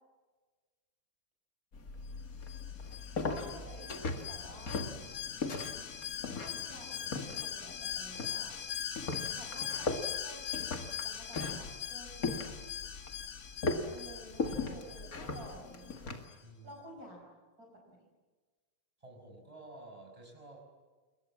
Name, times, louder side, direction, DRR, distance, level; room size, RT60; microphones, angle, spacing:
sound 1, 1.7-16.3, left 3 dB, 40° left, 2.3 m, -39 dB
Alarm, 2.5-16.0 16.3-16.4, left 9 dB, 75° left, 2.6 m, -41 dB
voice 1, 3.2-4.9 6.3-8.6 9.3-12.6 13.9-16.2 16.6-18.0, right 1 dB, 40° right, 0 dB, 5.4 m, -52 dB
voice 2, 9.0-9.5 16.4-16.8 19.0-20.6, right 2 dB, 15° right, 1 dB, 5.5 m, -52 dB
28.5 x 22.5 x 7.4 m, 1.4 s
omnidirectional pair, 2.4 m